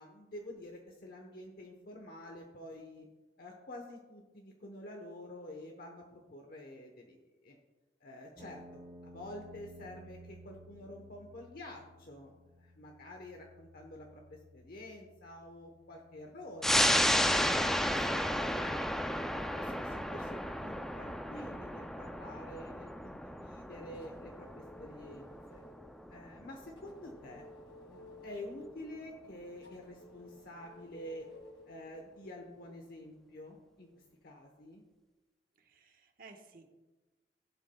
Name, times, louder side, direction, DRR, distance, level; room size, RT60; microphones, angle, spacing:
voice 1, 0.0-3.1 3.4-7.2 7.4-7.6 8.0-12.3 12.6-16.8 17.2-19.0 19.3-24.5 24.8-25.6 26.1-27.5 27.9-31.3 31.6-34.8, left 1 dB, 55° left, 2 dB, 1.0 m, -48 dB
sound 1, 8.4-22.4, equal, 30° right, 1.0 m, -58 dB
sound 2, 15.5-19.4 23.9-26.3 26.8-32.4, left 1 dB, 85° left, 1.9 m, -55 dB
sound 3, 16.6-27.6 28.0-28.1, equal, ahead, 0.4 m, -33 dB
voice 2, 35.6-36.7, right 3 dB, 55° right, 3 dB, 1.2 m, -56 dB
16.0 x 8.0 x 2.3 m, 1.2 s
head